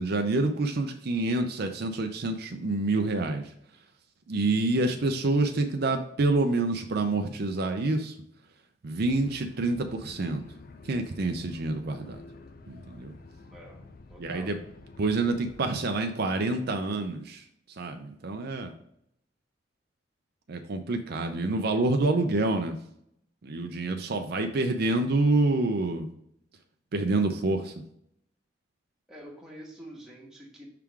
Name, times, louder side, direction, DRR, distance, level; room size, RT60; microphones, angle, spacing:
voice 1, 0.0-3.5 4.3-8.2 8.8-10.4 10.8-12.2 12.7-13.1 14.2-14.6 15.0-17.4 17.8-18.7 20.5-22.8 23.4-26.1 26.9-27.7, right 2 dB, 60° right, 5 dB, 0.5 m, -27 dB
sound 1, 9.0-15.8, left 3 dB, 50° left, 0.6 m, -49 dB
voice 2, 13.4-14.6 29.1-30.7, right 1 dB, 5° right, -3 dB, 1.4 m, -48 dB
5.7 x 3.6 x 4.7 m, 0.73 s
head